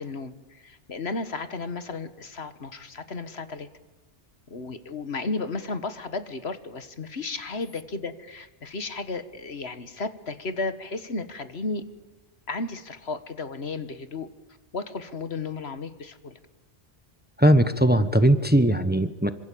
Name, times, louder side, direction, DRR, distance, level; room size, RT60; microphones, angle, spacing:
voice 1, 0.0-3.7 4.5-11.8 12.5-14.3 14.7-16.4, left 3 dB, 70° left, 11 dB, 1.8 m, -34 dB
voice 2, 17.4-19.3, right 1 dB, 10° right, 12 dB, 1.1 m, -19 dB
26.5 x 25.5 x 8.6 m, 1.1 s
omnidirectional pair, 1.1 m